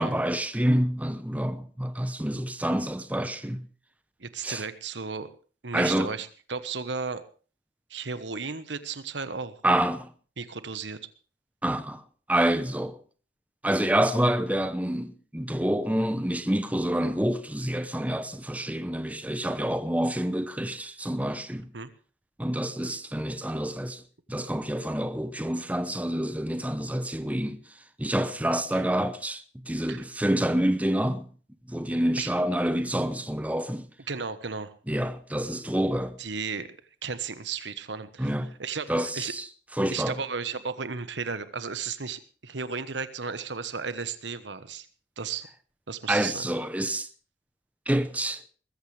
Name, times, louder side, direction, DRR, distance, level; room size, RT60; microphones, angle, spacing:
voice 1, 0.0-3.6 4.4-4.6 5.7-6.1 9.6-10.1 11.6-12.0 12.3-13.0 13.6-21.7 22.4-24.0 24.3-27.6 28.0-31.3 31.7-33.9 34.9-36.2 38.2-38.5 38.9-39.5 39.8-40.1 46.1-47.1 47.9-48.4, right 1 dB, 10° right, 0.8 m, -27 dB
voice 2, 4.2-5.3 5.6-7.2 7.9-9.5 10.4-11.0 21.7-21.9 28.7-28.8 29.9-30.0 32.2-32.3 34.1-34.7 36.2-39.3 39.9-44.9 45.2-45.5 45.9-46.5, right 5 dB, 85° right, 1.3 m, -34 dB
21.0 x 14.5 x 3.4 m
head